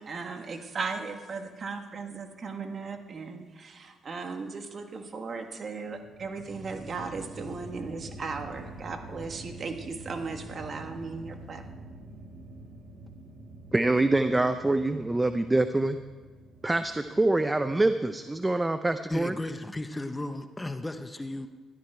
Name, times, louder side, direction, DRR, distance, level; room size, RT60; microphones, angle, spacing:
voice 1, 0.0-11.6, right 4 dB, 45° right, 5 dB, 1.4 m, -37 dB
sound 1, 5.9-18.2, right 1 dB, 60° right, 2.3 m, -46 dB
voice 2, 13.7-16.0 16.6-19.3, right 2 dB, 15° right, 10 dB, 0.5 m, -25 dB
voice 3, 19.1-21.5, left 1 dB, 15° left, 9 dB, 0.8 m, -35 dB
13.5 x 12.0 x 4.5 m, 1.4 s
cardioid pair, 90°, 0 cm